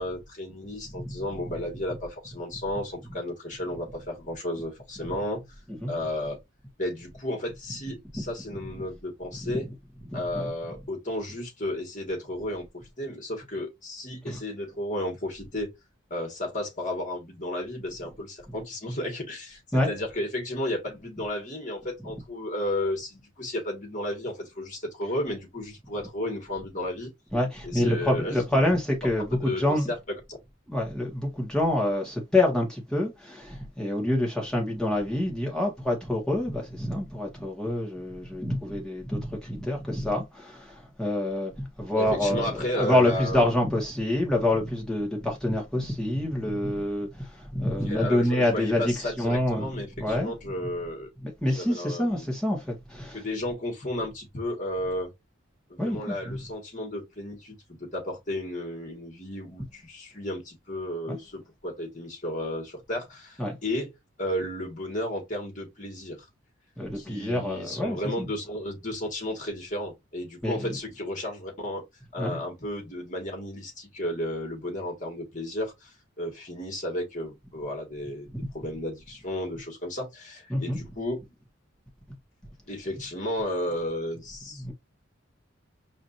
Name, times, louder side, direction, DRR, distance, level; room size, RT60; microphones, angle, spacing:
voice 1, 0.0-5.4 5.9-6.4 6.8-9.7 10.1-12.6 13.0-15.7 16.1-27.1 27.6-28.3 29.2-30.0 42.0-43.6 47.9-51.1 51.6-52.3 53.1-55.1 55.7-63.9 64.2-66.2 67.0-71.8 72.1-78.3 78.5-81.2 82.7-84.6, left 1 dB, 40° left, 2.0 m, -33 dB
voice 2, 10.1-10.5 14.3-14.4 19.7-19.9 27.3-29.9 30.7-50.5 51.2-53.3 55.8-56.4 61.1-61.2 63.4-63.6 66.8-68.3 70.4-70.7 72.2-72.4 80.5-80.8 84.6-84.7, left 1 dB, 5° left, 1.8 m, -27 dB
4.9 x 3.1 x 2.7 m
head